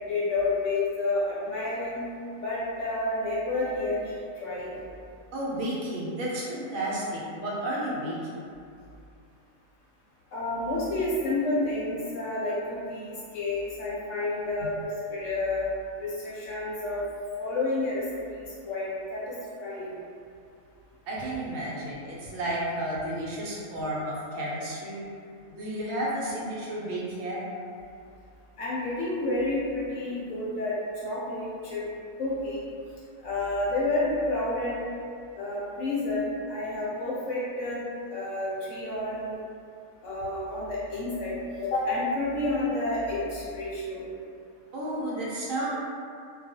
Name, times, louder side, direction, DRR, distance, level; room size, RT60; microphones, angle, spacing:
voice 1, 0.0-2.1 2.4-4.7 10.3-14.7 15.1-15.7 16.0-17.0 17.4-18.0 18.6-19.9 28.6-30.8 31.0-31.8 32.2-32.6 33.2-34.8 35.3-37.8 38.1-39.4 40.0-41.3 41.6-44.0, left 2 dB, 65° left, -7 dB, 0.8 m, -30 dB
voice 2, 5.3-8.5 14.6-14.7 21.1-25.0 25.5-27.4 44.7-45.7, right 1 dB, 70° right, -6 dB, 1.0 m, -32 dB
2.3 x 2.3 x 2.6 m, 2.4 s
omnidirectional pair, 1.5 m